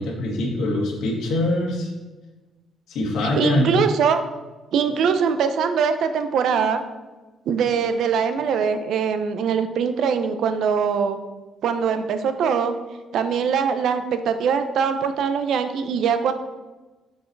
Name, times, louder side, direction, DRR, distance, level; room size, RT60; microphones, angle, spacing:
voice 1, 0.0-1.9 2.9-3.7, left 1 dB, 75° left, -2 dB, 2.1 m, -23 dB
voice 2, 3.3-4.2 4.7-6.8 7.5-11.2 11.6-12.7 13.1-16.3, right 6 dB, 65° right, 9 dB, 0.7 m, -22 dB
6.3 x 6.2 x 4.7 m, 1.2 s
cardioid pair, 140°, 0 cm